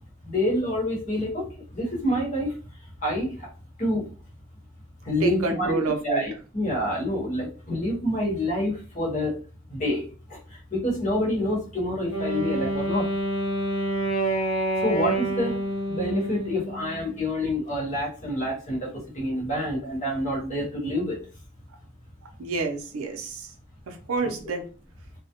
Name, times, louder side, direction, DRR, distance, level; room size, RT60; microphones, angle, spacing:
voice 1, 0.2-2.5 3.0-3.5 3.8-4.1 5.0-9.4 9.7-10.4 10.7-13.1 14.8-15.6 15.9-21.2 24.2-24.3, left 1 dB, 35° left, -4 dB, 0.9 m, -27 dB
voice 2, 5.2-6.2 22.4-23.5 23.9-24.6, right 3 dB, 80° right, 4 dB, 0.5 m, -29 dB
Wind instrument woodwind instrument, 12.1-17.1, right 1 dB, 65° left, 0.6 m, -28 dB
2.2 x 2.0 x 2.8 m, 0.38 s
head